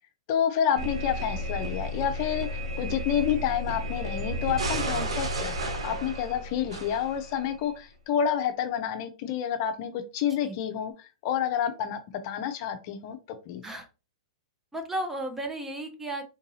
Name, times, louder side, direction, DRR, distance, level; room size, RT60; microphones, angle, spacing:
voice 1, 0.3-13.2 13.5-13.6, left 9 dB, 50° left, 7 dB, 0.6 m, -29 dB
sound 1, 0.8-7.6, equal, 80° right, 0.8 m, -32 dB
voice 2, 14.7-16.3, right 1 dB, 10° right, 5 dB, 0.7 m, -34 dB
3.8 x 2.6 x 2.8 m, 0.30 s
hypercardioid pair, 115°, 3 cm